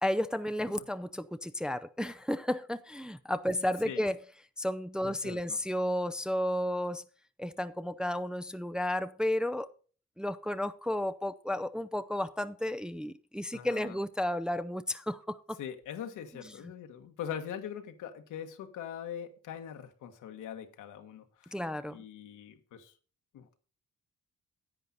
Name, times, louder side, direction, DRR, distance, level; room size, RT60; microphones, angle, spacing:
voice 1, 0.0-4.2 4.6-7.0 7.4-9.7 10.2-15.6 21.5-22.0, left 1 dB, 5° right, 0.5 m, -32 dB
voice 2, 5.0-5.6 13.5-14.0 15.6-21.6 21.9-22.9 23.3-23.6, left 9 dB, 80° left, 1.5 m, -42 dB
10.5 x 8.2 x 4.1 m
cardioid pair, 90°, 30 cm